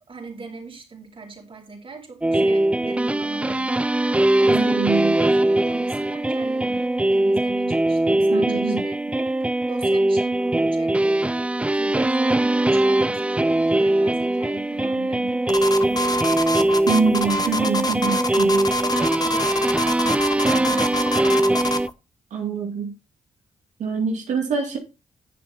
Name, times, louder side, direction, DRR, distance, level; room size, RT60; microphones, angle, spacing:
voice 1, 0.1-3.7 4.4-9.0 9.7-11.4 11.7-16.2 18.5-21.7, right 4 dB, 45° right, 4.4 m, -39 dB
sound 1, 2.2-21.9, right 1 dB, 10° right, 0.4 m, -21 dB
voice 2, 4.5-5.2 8.2-8.8 16.9-18.7 22.3-22.9 23.8-24.8, right 5 dB, 80° right, 2.5 m, -24 dB
sound 2, 15.5-21.9, left 1 dB, 30° left, 1.2 m, -26 dB
10.5 x 7.0 x 4.2 m
supercardioid pair, 55°, 12 cm